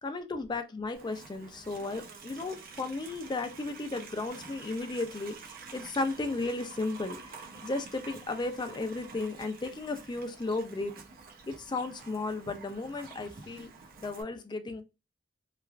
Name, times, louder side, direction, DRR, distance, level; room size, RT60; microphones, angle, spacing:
voice 1, 0.0-11.0 11.5-13.7 14.0-14.8, left 3 dB, 25° left, 0.4 m, -35 dB
Livestock farm animals working animals, 0.9-14.2, right 4 dB, 50° right, 0.6 m, -48 dB
3.0 x 2.4 x 2.3 m
head